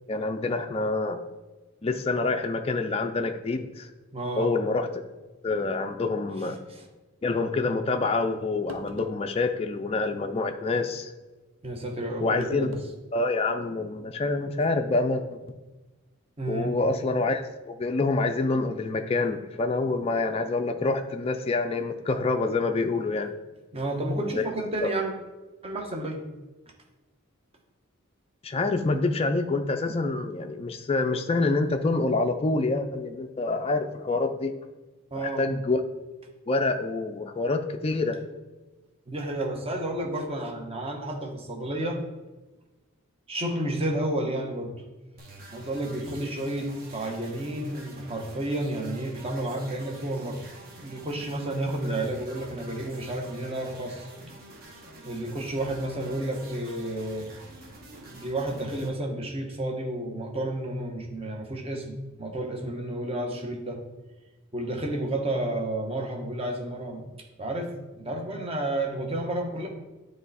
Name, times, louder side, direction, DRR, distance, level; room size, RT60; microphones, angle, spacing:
voice 1, 0.1-1.2 1.8-3.9 4.4-5.0 5.4-6.6 7.2-11.1 12.2-12.7 13.1-15.4 16.5-23.3 24.2-24.4 24.8-24.9 28.4-34.5 35.2-35.8 36.5-38.2, left 3 dB, 25° left, 5 dB, 0.4 m, -27 dB
voice 2, 4.1-4.5 11.6-12.7 16.4-16.8 23.7-25.1 25.6-26.2 35.1-35.4 39.1-42.0 43.3-44.7 45.5-50.4 50.8-54.1 55.0-57.3 58.0-63.8 64.5-67.0 67.4-67.7 68.0-69.7, right 1 dB, 25° right, 1 dB, 1.0 m, -31 dB
sound 1, 8.3-8.4 8.7-9.3 10.7-10.9 12.4-12.9 13.3-13.4 14.5-14.7, equal, 65° right, 0.8 m, -45 dB
sound 2, 45.2-58.9, right 2 dB, 45° right, 1.3 m, -47 dB
9.4 x 3.3 x 4.1 m, 1.1 s
head